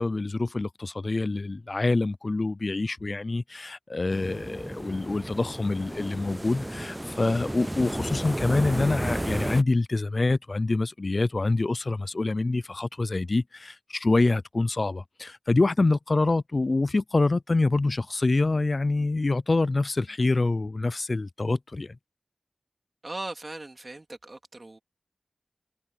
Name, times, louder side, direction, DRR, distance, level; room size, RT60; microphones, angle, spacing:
voice 1, 0.0-22.0, left 2 dB, 60° left, 0.4 m, -26 dB
sound 1, 4.1-9.6, right 1 dB, 15° right, 0.3 m, -32 dB
voice 2, 23.0-24.8, right 2 dB, 50° right, 2.9 m, -39 dB
wide cardioid pair, 55°, 0 cm